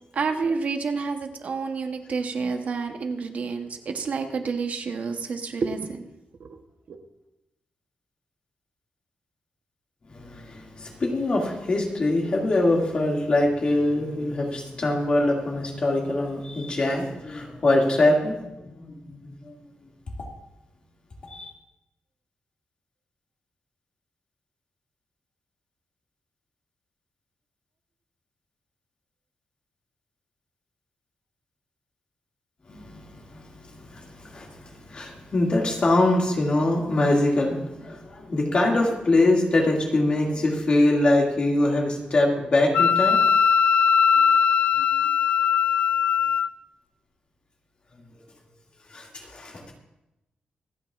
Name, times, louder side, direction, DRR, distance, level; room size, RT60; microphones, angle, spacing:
voice 1, 0.1-6.1 6.4-6.5 6.9-7.0, right 4 dB, 55° right, 5 dB, 0.9 m, -29 dB
voice 2, 10.1-19.6 21.3-21.5 32.7-43.2 44.8-44.9 48.9-49.6, left 2 dB, 35° left, -1 dB, 2.2 m, -24 dB
Wind instrument woodwind instrument, 42.7-46.5, left 7 dB, 70° left, 0.3 m, -20 dB
26.0 x 8.9 x 2.5 m, 0.92 s
wide cardioid pair, 175°, 3 cm